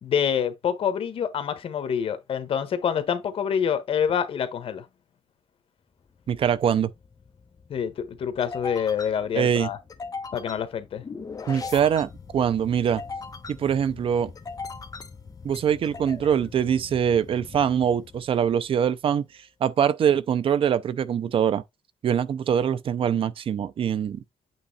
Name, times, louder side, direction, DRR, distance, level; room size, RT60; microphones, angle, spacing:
voice 1, 0.0-4.8 7.7-9.8 10.3-11.0, left 8 dB, 85° left, 1.2 m, -26 dB
sound 1, 6.1-18.8, left 4 dB, 40° left, 1.1 m, -40 dB
voice 2, 6.3-6.9 9.4-9.7 11.5-13.0 13.5-14.3 15.4-19.3 19.6-21.6 22.0-24.2, right 8 dB, 75° right, 0.6 m, -23 dB
8.5 x 3.1 x 4.1 m
wide cardioid pair, 110°, 9 cm